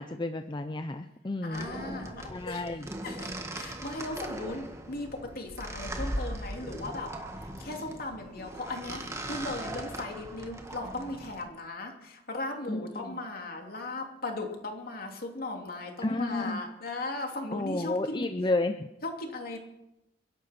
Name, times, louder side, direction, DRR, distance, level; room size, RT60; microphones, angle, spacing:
voice 1, 0.0-1.7 2.3-2.9 12.7-13.2 16.0-16.6 17.5-18.9, left 2 dB, 25° left, 7 dB, 0.6 m, -31 dB
voice 2, 1.4-2.6 3.0-7.1 7.4-18.3 19.0-19.6, left 2 dB, 55° left, 2 dB, 2.8 m, -37 dB
sound 1, 1.5-11.4, right 1 dB, 15° right, 1.7 m, -39 dB
29.5 x 11.0 x 4.4 m, 0.89 s
head